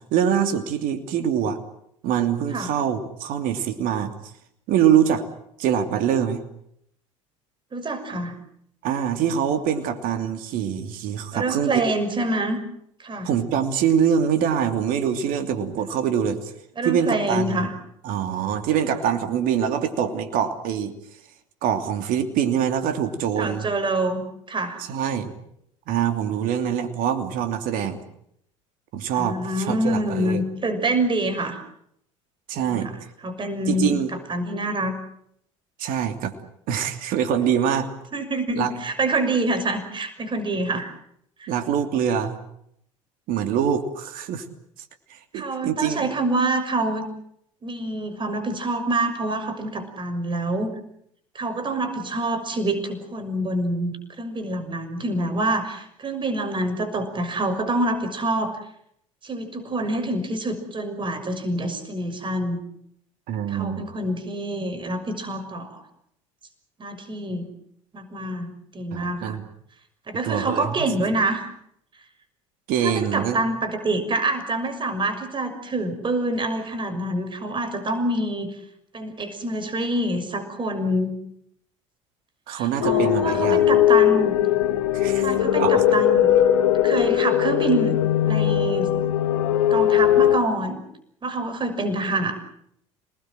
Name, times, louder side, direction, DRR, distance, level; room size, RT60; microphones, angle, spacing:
voice 1, 0.1-1.6 2.0-4.1 4.7-5.2 5.6-6.4 8.8-11.7 13.2-16.5 16.8-17.7 18.0-20.9 21.6-23.7 24.8-25.3 25.9-28.0 28.9-30.4 32.5-32.9 33.7-34.1 35.8-36.3 36.7-37.9 38.6-38.7 41.5-42.4 43.3-44.4 45.1-46.1 63.3-63.9 68.9-69.4 70.2-70.9 72.7-73.4 82.5-83.7 84.9-85.3 85.6-85.8, right 8 dB, 55° right, 8 dB, 2.9 m, -24 dB
voice 2, 7.7-8.3 11.3-12.6 13.0-13.3 16.8-17.7 23.4-24.8 29.2-31.6 32.5-32.9 33.2-34.0 34.3-35.0 38.1-40.9 41.4-41.5 45.3-47.1 47.6-50.7 51.3-58.5 59.2-62.6 63.5-65.8 66.8-67.5 67.9-69.4 70.1-71.5 72.8-78.5 78.9-81.1 82.5-84.4 85.2-86.3 86.8-88.0 88.2-88.9 89.7-90.8 91.2-92.4, right 2 dB, 30° right, 7 dB, 6.3 m, -26 dB
sound 1, 82.8-90.4, left 11 dB, 75° left, 2.0 m, -19 dB
27.5 x 20.0 x 7.8 m, 0.72 s
hypercardioid pair, 70°, 17 cm